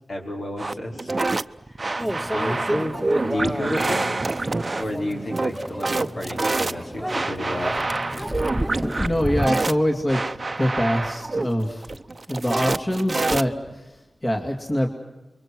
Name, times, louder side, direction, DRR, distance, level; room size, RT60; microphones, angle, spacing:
voice 1, 0.1-1.1 1.7-1.8 2.3-4.1 4.8-7.7, left 1 dB, 65° left, 1 dB, 5.1 m, -31 dB
sound 1, 0.6-13.8, right 3 dB, 40° right, 0.7 m, -27 dB
Microwave oven, 2.0-9.5, equal, ahead, 0.9 m, -30 dB
voice 2, 9.0-10.2 10.6-11.9 12.3-13.8 14.2-14.9, equal, 30° left, 2 dB, 2.8 m, -24 dB
28.5 x 23.0 x 6.3 m, 1.0 s
wide cardioid pair, 60°, 0 cm